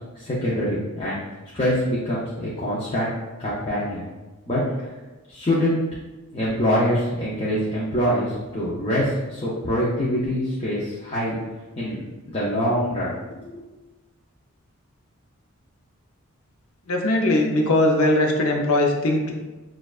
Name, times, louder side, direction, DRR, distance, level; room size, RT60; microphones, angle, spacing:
voice 1, 0.2-1.2 1.5-4.0 4.5-4.9 5.3-5.8 6.3-11.4 11.8-12.0 12.3-13.6, equal, 25° left, -7 dB, 0.6 m, -24 dB
voice 2, 16.9-19.3, left 1 dB, 70° left, 1 dB, 0.6 m, -20 dB
6.4 x 2.4 x 2.4 m, 1.2 s
head